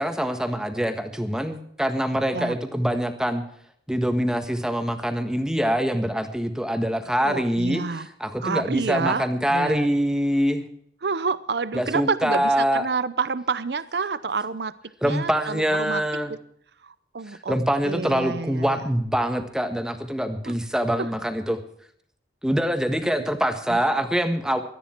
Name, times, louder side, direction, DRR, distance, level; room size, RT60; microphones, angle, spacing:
voice 1, 0.0-3.4 3.9-7.8 8.2-10.6 11.7-12.8 15.0-16.3 17.5-21.6 22.4-24.6, equal, 5° right, 7 dB, 1.5 m, -24 dB
voice 2, 7.2-8.1 8.4-9.9 11.0-14.7 15.0-16.0 16.3-16.4 16.8-17.6 17.8-18.8 20.4-20.6 21.0-21.1 23.7-23.8, right 4 dB, 70° right, 15 dB, 0.7 m, -28 dB
18.5 x 13.0 x 4.5 m, 0.66 s
head